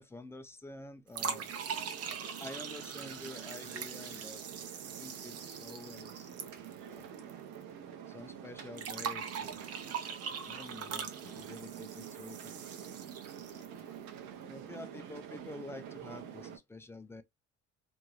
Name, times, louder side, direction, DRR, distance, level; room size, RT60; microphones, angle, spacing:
voice 1, 0.0-1.5 2.3-4.4 4.9-6.6 6.9-7.4 8.1-9.7 10.4-12.5 13.5-13.8 14.4-17.2, left 2 dB, 10° left, 0.3 m, -49 dB
sound 1, 1.1-7.3 7.6-7.7 8.8-13.8, right 7 dB, 55° right, 0.7 m, -41 dB
sound 2, 1.2-16.6, right 9 dB, 85° right, 0.8 m, -47 dB
2.6 x 2.3 x 3.0 m
cardioid pair, 115°, 30 cm